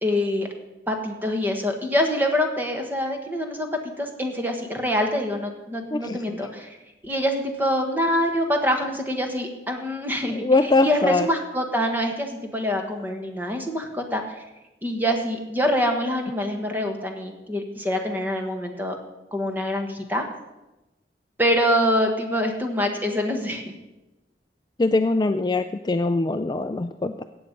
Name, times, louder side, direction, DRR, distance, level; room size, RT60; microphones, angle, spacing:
voice 1, 0.0-0.5 0.9-6.8 7.0-14.2 14.8-18.9 19.3-20.2 21.4-23.6, equal, 10° right, 3 dB, 1.4 m, -25 dB
voice 2, 5.9-6.5 10.3-11.3 24.8-27.2, left 3 dB, 25° left, 9 dB, 0.3 m, -22 dB
15.0 x 8.8 x 5.3 m, 1.0 s
head